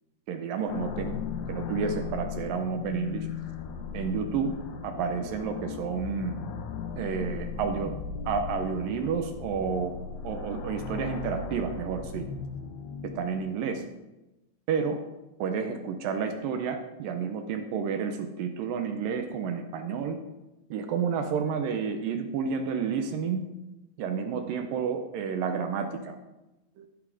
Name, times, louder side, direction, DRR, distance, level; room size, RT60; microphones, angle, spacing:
voice 1, 0.3-1.1 1.5-3.3 3.9-4.5 4.8-6.4 7.0-7.9 8.3-9.9 10.2-12.3 13.0-13.8 14.7-15.0 15.4-20.2 20.7-23.5 24.0-26.2 26.8-26.9, right 6 dB, 75° right, 7 dB, 2.2 m, -30 dB
sound 1, 0.7-13.7, left 6 dB, 85° left, 1.5 m, -37 dB
15.0 x 5.6 x 4.8 m, 1.0 s
omnidirectional pair, 4.5 m